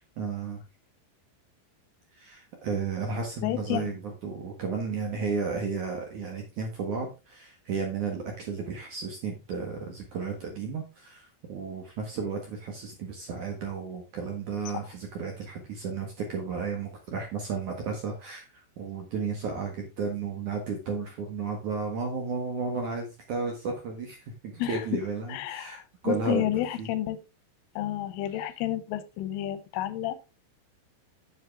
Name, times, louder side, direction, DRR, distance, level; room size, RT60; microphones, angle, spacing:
voice 1, 0.2-0.6 2.1-26.4 26.8-26.9, right 5 dB, 60° right, 2 dB, 2.1 m, -33 dB
voice 2, 3.4-4.0 14.7-14.8 24.6-24.8 25.3-27.2 27.8-30.2, left 13 dB, 90° left, 13 dB, 3.5 m, -31 dB
9.8 x 7.2 x 3.6 m, 0.28 s
omnidirectional pair, 5.5 m